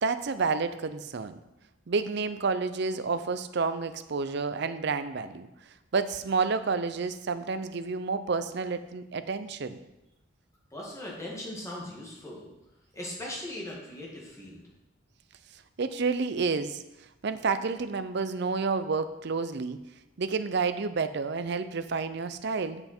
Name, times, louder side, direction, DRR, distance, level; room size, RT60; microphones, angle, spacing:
voice 1, 0.0-1.4 1.9-5.5 5.9-9.8 15.8-16.8 17.2-19.8 20.2-22.8, right 4 dB, 55° right, 11 dB, 0.5 m, -30 dB
voice 2, 10.7-12.5 12.9-14.6, left 1 dB, 15° left, -3 dB, 2.1 m, -39 dB
7.9 x 7.7 x 4.4 m, 0.96 s
head